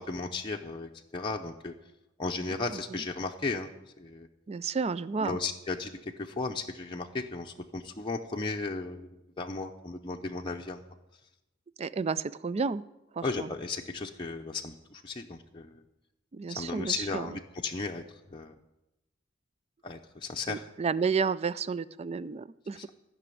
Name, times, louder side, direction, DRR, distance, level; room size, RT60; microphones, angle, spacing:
voice 1, 0.0-1.7 2.2-3.7 4.0-4.3 5.2-10.8 13.2-15.8 16.6-18.0 18.3-18.6 19.8-20.6 22.8-22.9, left 3 dB, 25° left, 1 dB, 0.7 m, -35 dB
voice 2, 2.5-3.0 4.5-5.4 11.8-12.8 13.1-13.5 16.3-17.3 20.5-22.9, right 5 dB, 30° right, 16 dB, 0.4 m, -32 dB
15.0 x 6.1 x 9.2 m, 0.94 s
head